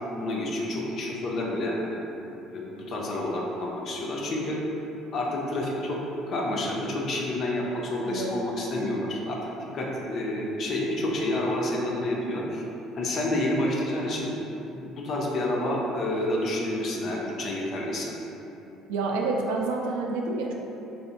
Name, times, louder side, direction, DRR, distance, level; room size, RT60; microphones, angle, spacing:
voice 1, 0.1-4.6 5.1-6.0 6.3-12.7 13.0-14.3 14.7-18.1, left 1 dB, 45° left, -2 dB, 0.5 m, -29 dB
voice 2, 18.9-20.5, right 3 dB, 65° right, 0 dB, 0.3 m, -28 dB
4.1 x 2.6 x 2.4 m, 2.9 s
figure-of-eight pair, 55°, 0 cm